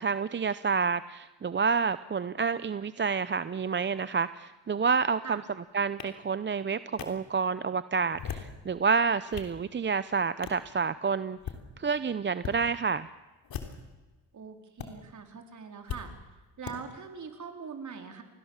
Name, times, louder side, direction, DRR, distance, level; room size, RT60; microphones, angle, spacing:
voice 1, 0.0-5.4 5.7-11.4 11.8-13.1, right 5 dB, 30° right, 14 dB, 0.7 m, -29 dB
sound 1, 6.0-6.1 7.0-7.1 8.1-8.6 9.1-9.6 10.4-10.6 11.3-11.6 12.4-12.6 13.4-13.9 14.8-14.9 15.9-16.0 16.6-16.8, left 8 dB, 65° left, 3.4 m, -38 dB
voice 2, 14.3-16.1 16.6-18.2, right 5 dB, 50° right, 5 dB, 4.5 m, -42 dB
29.0 x 21.0 x 7.4 m, 1.2 s
cardioid pair, 85°, 38 cm